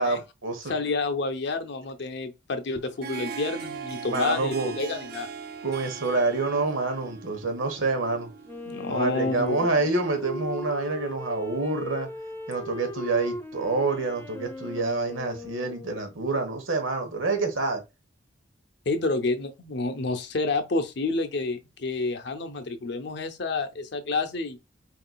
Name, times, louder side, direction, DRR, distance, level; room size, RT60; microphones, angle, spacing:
voice 1, 0.0-0.8 4.0-4.7 5.6-8.3 8.9-12.1 12.5-17.8, right 3 dB, 90° right, 1.2 m, -27 dB
voice 2, 0.6-5.3 8.7-9.7 18.9-24.6, left 3 dB, 60° left, 0.6 m, -29 dB
Harp, 2.7-10.5, right 5 dB, 50° right, 0.4 m, -40 dB
Wind instrument woodwind instrument, 8.4-16.1, left 2 dB, 10° left, 0.7 m, -38 dB
4.3 x 3.8 x 2.3 m
head